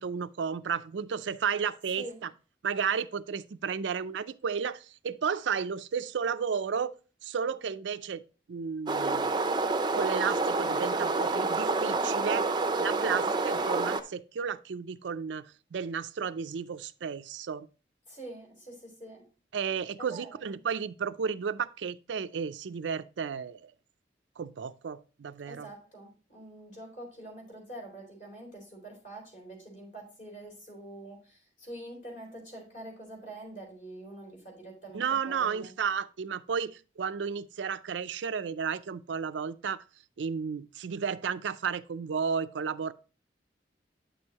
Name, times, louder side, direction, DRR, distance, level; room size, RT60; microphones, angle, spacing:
voice 1, 0.0-2.1 2.6-6.9 7.2-8.2 8.5-9.3 9.9-12.5 12.8-17.7 19.5-23.7 24.4-25.7 34.9-39.8 40.2-42.9, right 6 dB, 85° right, 0.4 m, -33 dB
sound 1, 8.9-14.0, right 3 dB, 25° right, 0.5 m, -28 dB
voice 2, 18.1-19.3 20.0-20.4 25.4-35.7, right 1 dB, 45° left, 3.7 m, -45 dB
9.2 x 6.4 x 2.9 m
head